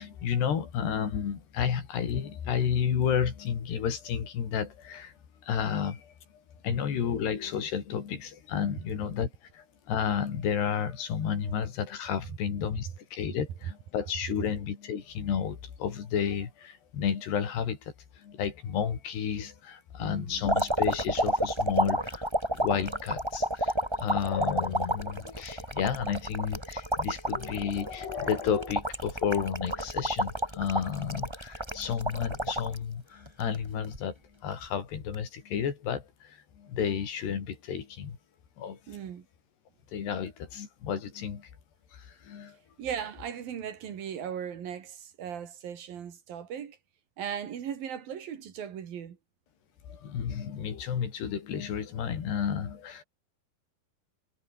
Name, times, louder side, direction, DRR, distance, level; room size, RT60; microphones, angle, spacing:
voice 1, 0.0-5.1 5.4-6.1 6.6-22.3 22.5-38.2 38.6-39.1 39.9-41.5 41.9-42.6 49.9-53.0, left 8 dB, 85° left, 5.6 m, -32 dB
voice 2, 20.0-20.5 38.9-39.3 42.8-46.8 47.2-49.2, right 8 dB, 65° right, 4.0 m, -38 dB
sound 1, 20.4-32.8 33.3-34.0 35.0-35.2, right 1 dB, 5° right, 4.6 m, -30 dB
omnidirectional pair, 4.7 m